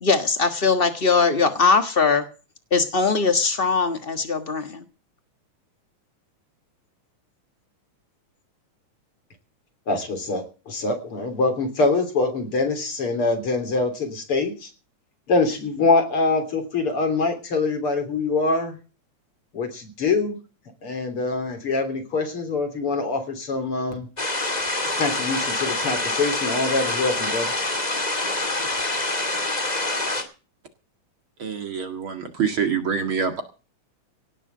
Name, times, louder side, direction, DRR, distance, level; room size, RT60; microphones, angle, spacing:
voice 1, 0.0-2.3 2.7-4.8, left 4 dB, 70° left, 7 dB, 0.5 m, -20 dB
voice 2, 9.9-14.7 15.3-18.8 19.5-20.4 20.8-24.1 24.9-27.5, left 3 dB, 45° left, 6 dB, 4.0 m, -24 dB
sound 1, 24.2-30.2, left 2 dB, 15° left, 2.1 m, -26 dB
voice 3, 31.4-33.4, right 6 dB, 45° right, 6 dB, 2.4 m, -25 dB
18.0 x 7.0 x 8.1 m, 0.35 s
omnidirectional pair, 3.6 m